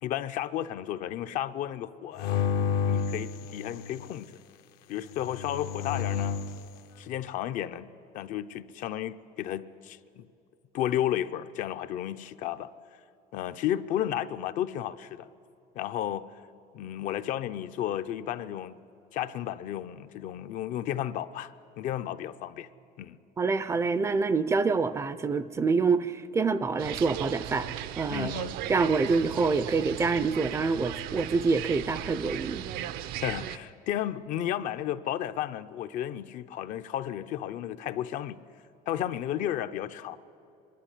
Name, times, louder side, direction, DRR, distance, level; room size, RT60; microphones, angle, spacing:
voice 1, 0.0-2.4 2.9-4.4 4.9-6.4 7.0-10.3 10.7-12.7 13.3-15.3 15.7-16.3 16.7-18.8 19.1-22.7 23.0-23.2 28.1-28.6 33.2-38.4 38.9-40.2, left 11 dB, 55° left, 0.6 m, -33 dB
sound 1, 2.2-4.1 5.1-6.6, left 7 dB, 80° left, 1.0 m, -30 dB
voice 2, 23.4-27.7 28.0-28.3 28.7-32.6, right 4 dB, 20° right, 0.4 m, -26 dB
sound 2, 26.8-33.6, right 11 dB, 80° right, 0.7 m, -37 dB
24.0 x 11.5 x 10.0 m
cardioid pair, 165°, 15 cm